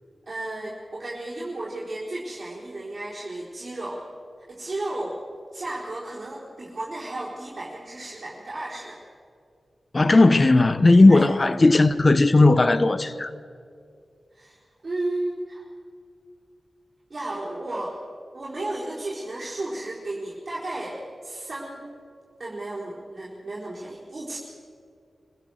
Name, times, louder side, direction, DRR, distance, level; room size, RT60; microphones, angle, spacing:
voice 1, 0.3-4.0 4.5-5.2 5.5-9.0 11.1-11.3 14.3-15.7 17.1-18.0 18.3-21.0 21.2-21.8 22.4-24.4, right 2 dB, 50° right, 4.2 m, -33 dB
voice 2, 9.9-13.3, left 2 dB, 40° left, 1.0 m, -16 dB
25.5 x 16.0 x 6.5 m
cardioid pair, 55°, 0 cm